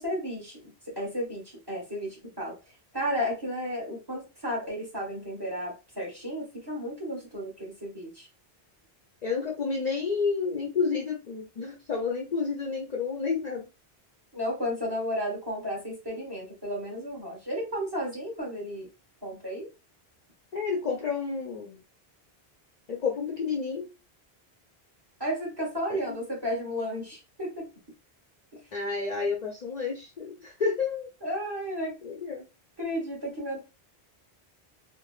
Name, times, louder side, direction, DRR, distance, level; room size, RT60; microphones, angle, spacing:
voice 1, 0.0-2.6 2.9-8.3 14.3-18.9 19.2-19.7 25.2-27.6 31.2-31.9 32.8-33.6, equal, 25° right, -3 dB, 1.3 m, -33 dB
voice 2, 9.2-13.7 20.5-21.8 22.9-23.9 25.9-26.0 28.7-31.1 32.0-32.4, left 5 dB, 50° left, -1 dB, 0.6 m, -30 dB
3.2 x 2.1 x 2.3 m, 0.28 s
omnidirectional pair, 1.1 m